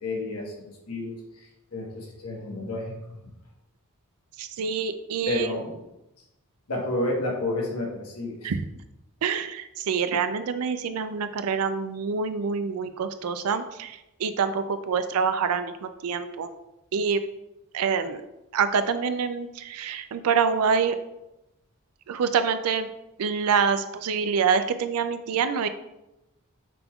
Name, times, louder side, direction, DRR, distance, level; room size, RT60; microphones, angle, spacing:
voice 1, 0.0-3.0 5.3-5.8 6.7-8.5, left 2 dB, 85° left, -1 dB, 1.2 m, -31 dB
voice 2, 4.4-5.6 8.4-8.6 9.2-16.5 16.9-17.2 17.7-18.2 18.5-21.0 22.1-22.9 23.2-25.7, right 6 dB, 70° right, 10 dB, 0.4 m, -26 dB
5.8 x 3.5 x 2.3 m, 0.93 s
head